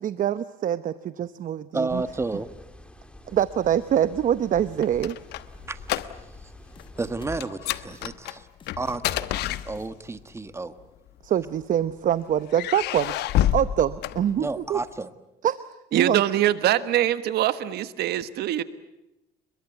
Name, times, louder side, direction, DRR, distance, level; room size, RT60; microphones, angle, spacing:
voice 1, 0.0-2.0 3.3-5.2 11.2-13.1 13.5-14.8 15.4-15.7 15.9-16.2, right 10 dB, 50° right, 14 dB, 0.9 m, -24 dB
voice 2, 1.7-2.5 5.7-5.8 7.0-8.5 8.8-10.8 14.4-15.1, right 3 dB, 15° right, 11 dB, 1.5 m, -31 dB
sound 1, 1.9-7.5, left 1 dB, 5° left, 2.7 m, -47 dB
sound 2, 4.6-6.5 6.8-7.0 7.4-10.2 11.1-11.9 12.5-14.8, left 13 dB, 80° left, 1.2 m, -29 dB
sound 3, 6.8-7.4 7.7-8.0 8.6-9.3 9.5-9.9, left 5 dB, 30° left, 1.5 m, -44 dB
voice 3, 15.9-18.6, right 12 dB, 75° right, 13 dB, 1.4 m, -23 dB
29.5 x 22.5 x 8.0 m, 0.91 s
cardioid pair, 110°, 17 cm